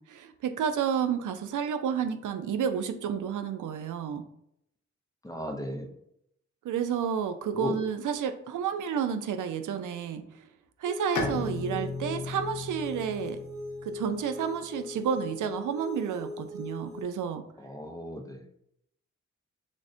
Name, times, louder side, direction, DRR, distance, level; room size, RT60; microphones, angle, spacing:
voice 1, 0.1-4.2 6.6-10.2 10.8-13.4 13.8-17.4, right 7 dB, 90° right, 8 dB, 0.5 m, -31 dB
voice 2, 5.2-5.9 7.5-7.8 17.6-18.5, equal, 10° left, 3 dB, 0.4 m, -35 dB
sound 1, 10.8-17.0, left 1 dB, 50° right, 1.1 m, -40 dB
Bowed string instrument, 11.1-14.8, left 3 dB, 80° left, 0.7 m, -36 dB
6.2 x 2.1 x 2.5 m, 0.75 s
wide cardioid pair, 145°, 30 cm